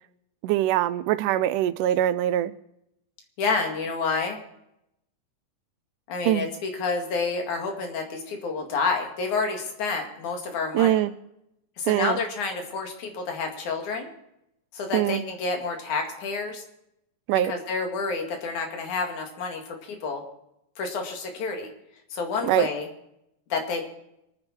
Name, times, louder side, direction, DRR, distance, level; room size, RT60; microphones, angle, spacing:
voice 1, 0.4-2.5 6.3-6.4 10.7-11.1 11.9-12.2 14.9-15.2 17.3-17.5 22.4-22.7, right 13 dB, 85° right, 2.2 m, -23 dB
voice 2, 3.4-4.4 6.1-11.0 11.8-14.1 14.7-16.6 17.4-20.2 20.8-21.7 22.1-22.9 23.5-23.8, left 4 dB, 70° left, 3.5 m, -29 dB
25.0 x 9.8 x 4.4 m
omnidirectional pair, 3.6 m